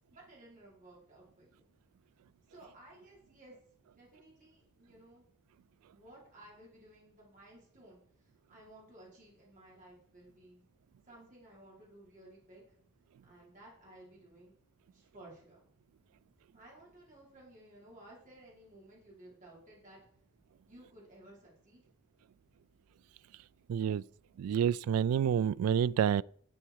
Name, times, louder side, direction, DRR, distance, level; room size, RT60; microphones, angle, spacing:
voice 1, 0.1-1.7 2.5-3.5 3.9-5.3 5.9-10.6 11.1-12.8 13.2-14.5 14.9-15.6 16.5-20.0 20.7-21.9, right 1 dB, 40° right, 4.8 m, -56 dB
voice 2, 23.7-24.0 24.4-26.2, right 8 dB, 85° right, 0.3 m, -28 dB
12.0 x 7.9 x 4.6 m
head